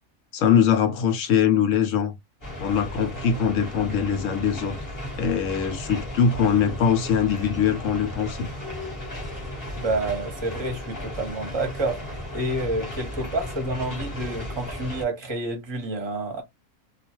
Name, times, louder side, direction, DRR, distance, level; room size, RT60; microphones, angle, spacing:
voice 1, 0.3-2.1 2.6-4.8 5.2-8.5, left 7 dB, 70° left, 0.9 m, -22 dB
sound 1, 2.4-15.1, left 1 dB, 15° left, 1.0 m, -35 dB
voice 2, 9.8-12.0 12.3-16.4, right 2 dB, 25° right, 0.8 m, -29 dB
2.3 x 2.3 x 2.9 m
omnidirectional pair, 1.4 m